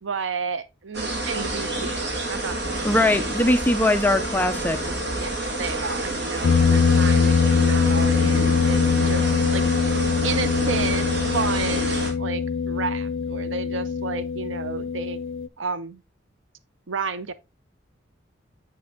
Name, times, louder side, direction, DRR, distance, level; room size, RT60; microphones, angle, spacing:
voice 1, 0.0-2.9 5.0-9.2 9.5-9.6 10.2-11.1 11.3-15.2 15.6-16.0 16.9-17.3, right 4 dB, 80° right, 0.6 m, -31 dB
sound 1, 0.9-12.1, right 2 dB, 60° right, 2.2 m, -28 dB
voice 2, 2.8-4.8, left 1 dB, 10° left, 0.4 m, -21 dB
sound 2, 6.4-15.5, left 5 dB, 90° left, 0.5 m, -22 dB
7.7 x 5.9 x 3.5 m
head